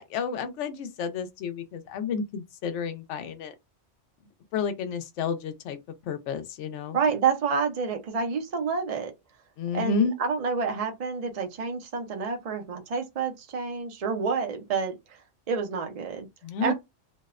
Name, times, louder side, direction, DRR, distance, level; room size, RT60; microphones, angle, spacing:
voice 1, 0.0-3.5 4.5-5.8 6.1-7.0 9.6-10.1 16.4-16.7, left 5 dB, 75° left, 0.9 m, -30 dB
voice 2, 6.9-9.1 9.7-14.9 15.5-16.3 16.6-16.7, right 5 dB, 55° right, 0.4 m, -28 dB
2.6 x 2.0 x 2.3 m
omnidirectional pair, 1.2 m